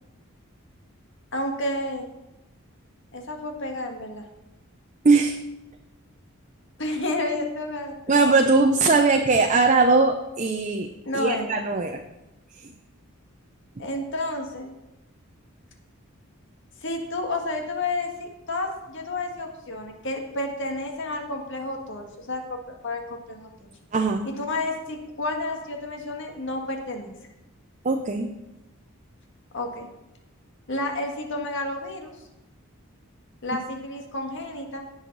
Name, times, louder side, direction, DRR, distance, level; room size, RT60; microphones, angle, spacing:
voice 1, 1.3-2.1 3.1-4.2 6.8-8.3 11.0-11.6 13.8-14.7 16.8-22.6 22.8-23.7 24.3-27.1 29.5-29.9 30.7-32.2 33.4-34.8, left 2 dB, 60° left, 3 dB, 1.8 m, -30 dB
voice 2, 5.0-5.4 8.1-10.9 11.1-12.0 12.6-12.7 23.9-24.3 27.8-28.3, right 3 dB, 35° right, 4 dB, 0.6 m, -20 dB
18.0 x 6.5 x 4.0 m, 0.96 s
head